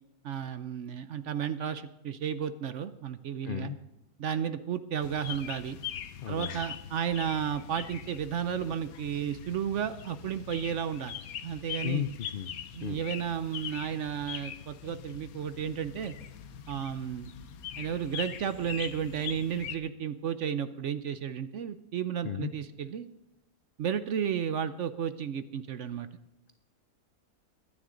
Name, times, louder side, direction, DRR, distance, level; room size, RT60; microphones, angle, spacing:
voice 1, 0.2-3.7 4.2-5.8 6.3-11.2 11.4-12.0 12.7-16.1 16.7-17.3 17.8-23.1 23.8-26.1, right 8 dB, 60° right, 12 dB, 0.8 m, -33 dB
voice 2, 3.5-3.8 6.2-6.7 11.8-12.5 12.8-13.1 22.2-22.5, left 9 dB, 85° left, 10 dB, 0.4 m, -34 dB
sound 1, 5.0-19.8, left 9 dB, 70° left, 1.2 m, -42 dB
23.0 x 9.8 x 3.8 m, 0.90 s
omnidirectional pair, 1.7 m